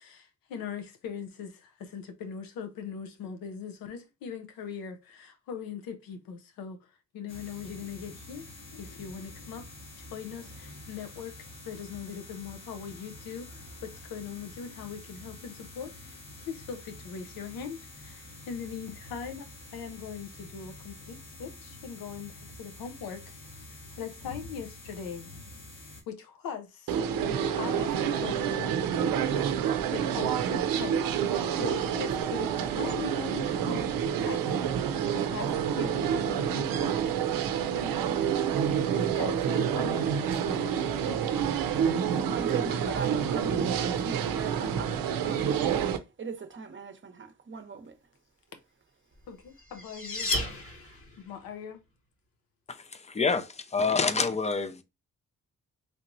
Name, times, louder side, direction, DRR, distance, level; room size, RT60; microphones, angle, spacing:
voice 1, 0.0-8.5 8.8-9.7 10.0-11.3 11.6-23.7 23.9-25.3 26.1-27.0 27.6-28.8 29.9-34.4 35.1-37.2 39.0-41.2 49.3-50.3 51.2-51.8, left 6 dB, 90° left, 0.7 m, -41 dB
sound 1, 7.3-26.0, left 2 dB, 65° left, 1.3 m, -47 dB
sound 2, 26.9-46.0, right 8 dB, 80° right, 0.5 m, -28 dB
voice 2, 42.3-45.0 45.2-45.6 46.2-48.0, right 5 dB, 35° right, 0.7 m, -39 dB
sound 3, 49.2-51.3, left 2 dB, 40° left, 1.1 m, -33 dB
voice 3, 53.1-54.8, left 4 dB, 20° left, 0.4 m, -27 dB
3.2 x 3.0 x 2.6 m
cardioid pair, 70°, 34 cm